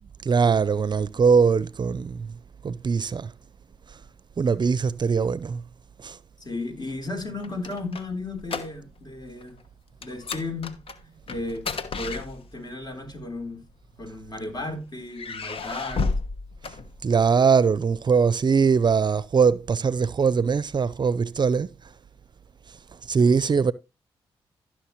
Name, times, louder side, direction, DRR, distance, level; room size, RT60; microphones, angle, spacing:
voice 1, 0.2-2.3 2.6-3.3 4.4-5.6 6.0-6.2 17.0-21.7 23.1-23.7, right 5 dB, 45° right, 0.5 m, -21 dB
voice 2, 6.4-9.6 10.0-10.8 11.3-13.6 14.0-16.1, left 2 dB, 40° left, 3.4 m, -34 dB
sound 1, 7.2-9.1 9.4-9.6 10.0-12.8 13.7-14.5 15.1-17.4, left 4 dB, 60° left, 1.2 m, -33 dB
15.0 x 6.3 x 3.1 m
supercardioid pair, 55°, 10 cm